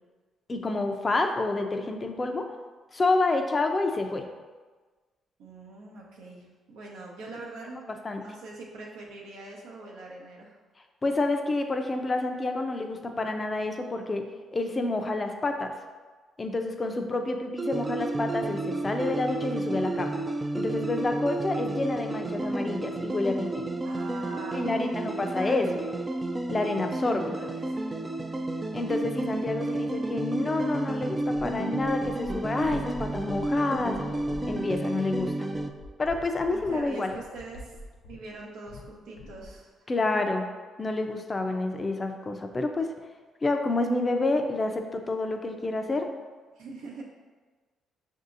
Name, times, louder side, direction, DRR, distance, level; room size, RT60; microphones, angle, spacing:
voice 1, 0.5-2.5 2.9-4.3 8.0-8.2 11.0-14.2 14.5-15.7 16.4-20.2 20.5-23.7 24.5-25.8 26.5-27.4 28.7-34.0 34.5-35.5 36.0-37.1 39.9-40.4 40.8-42.9 43.4-46.1, left 2 dB, 35° left, 5 dB, 0.5 m, -28 dB
voice 2, 5.4-7.8 8.1-10.6 23.8-25.8 27.3-28.1 29.4-29.9 36.5-37.7 38.0-39.9 46.6-47.0, right 2 dB, 85° right, -3 dB, 0.8 m, -43 dB
sound 1, 17.6-35.7, right 2 dB, 30° right, 0.4 m, -31 dB
sound 2, 31.3-38.4 38.7-38.9 39.2-39.6, left 1 dB, 85° left, 0.5 m, -44 dB
5.9 x 2.7 x 2.5 m, 1.4 s
supercardioid pair, 60°, 0 cm